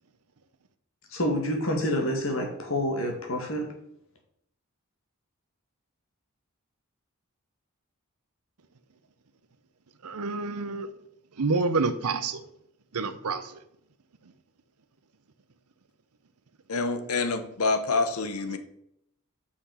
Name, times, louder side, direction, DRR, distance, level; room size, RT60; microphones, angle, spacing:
voice 1, 1.1-3.7, equal, 65° left, 3 dB, 1.9 m, -28 dB
voice 2, 10.0-10.9 11.3-12.5 12.9-13.6 14.2-14.3, right 3 dB, 90° right, 12 dB, 0.8 m, -28 dB
voice 3, 16.7-18.6, left 3 dB, 80° left, 9 dB, 0.9 m, -27 dB
6.5 x 5.8 x 5.6 m, 0.76 s
head